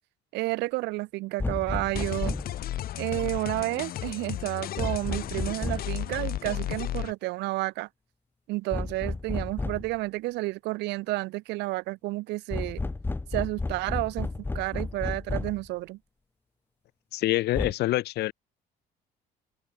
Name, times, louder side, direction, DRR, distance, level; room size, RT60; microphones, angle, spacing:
voice 1, 0.3-2.3 3.0-7.9 8.5-12.8 13.3-14.3 14.5-16.0, right 20 dB, 90° right, 2.5 m, -31 dB
sound 1, 1.4-2.6 4.8-6.0 8.7-10.0 12.5-15.7 17.5-17.7, left 3 dB, 10° left, 0.7 m, -32 dB
sound 2, 1.9-7.1, left 12 dB, 60° left, 1.6 m, -34 dB
voice 2, 17.1-18.3, left 16 dB, 75° left, 1.7 m, -26 dB
open air
cardioid pair, 110°, 17 cm